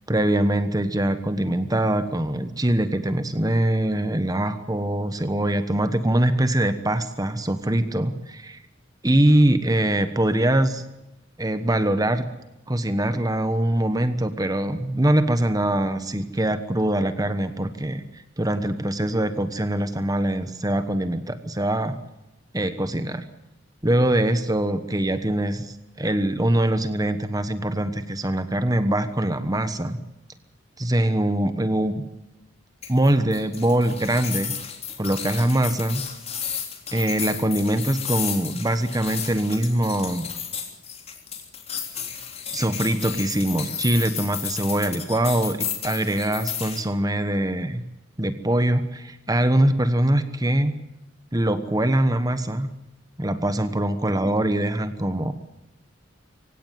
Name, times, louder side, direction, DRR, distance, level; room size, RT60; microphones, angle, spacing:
voice 1, 0.1-8.6 9.0-10.9 11.4-12.2 12.7-22.0 22.5-23.2 23.8-30.0 30.8-32.0 32.9-34.5 35.0-36.0 36.9-40.3 42.5-47.8 48.2-50.8 51.3-52.7 53.2-55.3, right 1 dB, 20° right, 10 dB, 1.2 m, -23 dB
sound 1, 32.8-46.8, left 8 dB, 35° left, 3.4 m, -33 dB
25.5 x 17.0 x 9.4 m, 0.96 s
head